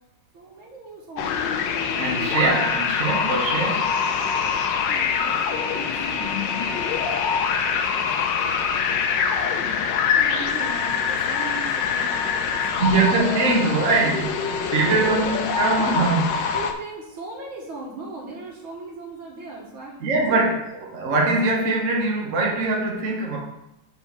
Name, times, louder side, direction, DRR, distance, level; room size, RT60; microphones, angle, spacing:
voice 1, 0.3-1.7 4.9-6.5 10.1-13.0 14.6-15.3 15.8-16.0 16.5-20.5, right 2 dB, 70° right, -2 dB, 2.2 m, -38 dB
sound 1, 1.2-16.7, left 6 dB, 70° left, 1.2 m, -24 dB
voice 2, 2.0-4.0 12.8-16.5 20.0-20.6 20.9-23.4, right 3 dB, 45° right, -2 dB, 1.3 m, -22 dB
5.6 x 4.5 x 5.7 m, 0.85 s
omnidirectional pair, 2.3 m